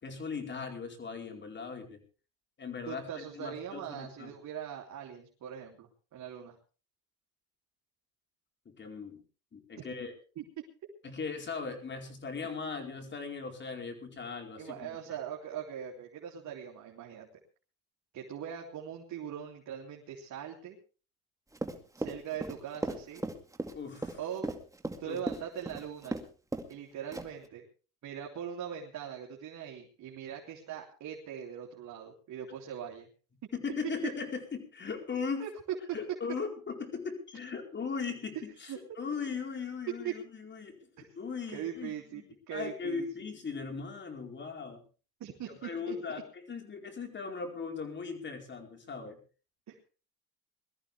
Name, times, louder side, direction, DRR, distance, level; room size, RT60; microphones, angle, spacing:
voice 1, 0.0-2.0 2.6-4.3 8.6-9.2 9.5-10.1 11.0-15.0 23.7-24.2 25.0-25.2 33.5-35.4 35.9-40.8 41.2-42.2 42.5-44.8 45.6-49.2, left 5 dB, 35° left, 4 dB, 4.7 m, -38 dB
voice 2, 2.9-6.6 10.4-10.5 12.4-12.5 14.6-17.3 18.1-20.8 22.0-23.2 24.2-24.5 25.0-26.2 26.7-27.6 28.0-33.1 35.4-35.5 38.3-39.0 40.0-40.1 41.0-41.2 41.5-43.1 45.2-46.2 49.7-49.8, right 9 dB, 55° right, 0 dB, 3.1 m, -41 dB
Run, 21.5-26.3 26.5-26.7 27.1-27.5, right 2 dB, 10° right, 2.2 m, -36 dB
22.5 x 14.0 x 3.5 m, 0.36 s
cardioid pair, 100°, 33 cm